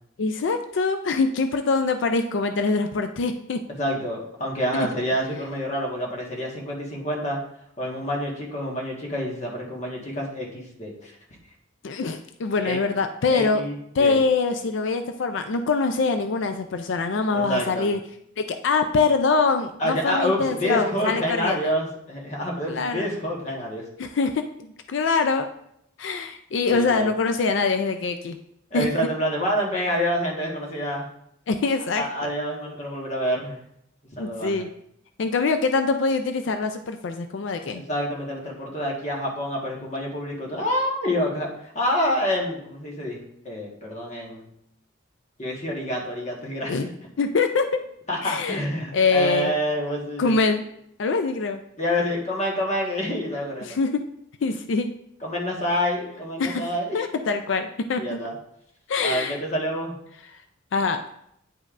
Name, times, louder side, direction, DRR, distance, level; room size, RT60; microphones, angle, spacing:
voice 1, 0.2-3.6 4.7-4.9 11.8-13.6 13.9-18.0 18.4-21.7 22.7-23.1 24.0-24.4 24.9-25.5 26.0-28.4 28.7-28.9 31.5-32.3 34.2-34.7 35.2-37.8 46.7-46.8 47.2-47.8 48.2-48.6 48.9-49.5 50.2-50.6 51.0-51.6 53.6-54.0 54.4-54.9 56.4-56.7 56.9-58.2 58.9-59.4 60.7-61.0, left 4 dB, 70° left, 7 dB, 0.4 m, -24 dB
voice 2, 3.7-7.4 7.8-11.1 12.6-12.8 13.3-14.2 17.3-17.9 19.8-23.8 26.7-27.1 28.7-31.1 31.9-33.6 34.2-34.6 37.7-43.2 43.4-44.5 45.4-46.9 48.1-50.3 51.8-53.8 55.2-57.0 58.0-58.3 59.0-59.9, equal, 35° left, -2 dB, 1.4 m, -27 dB
9.6 x 5.2 x 2.5 m, 0.74 s
head